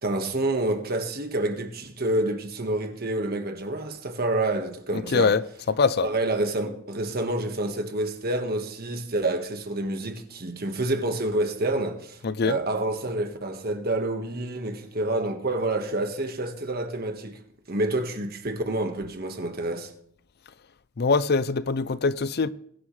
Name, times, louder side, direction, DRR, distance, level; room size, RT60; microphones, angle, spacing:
voice 1, 0.0-5.4 6.0-17.4 17.7-19.9, right 2 dB, 45° right, 1.5 m, -28 dB
voice 2, 5.7-6.1 12.2-12.6 21.0-22.5, left 4 dB, 50° left, 0.5 m, -23 dB
22.0 x 11.0 x 3.3 m
head